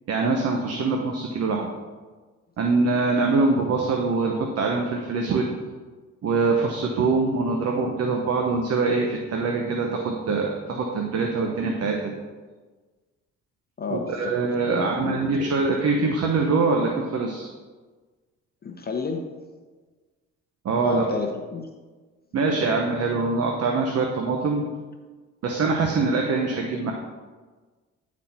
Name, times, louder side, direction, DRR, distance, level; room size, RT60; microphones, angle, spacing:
voice 1, 0.1-1.7 2.6-5.5 6.2-12.2 13.9-17.5 20.6-21.0 22.3-24.6 25.4-26.9, right 3 dB, 55° right, 1 dB, 0.9 m, -24 dB
voice 2, 13.8-14.4 14.7-15.2 18.6-19.3 20.8-21.7, left 4 dB, 30° left, 3 dB, 0.7 m, -30 dB
9.8 x 4.2 x 4.3 m, 1.4 s
cardioid pair, 90°, 30 cm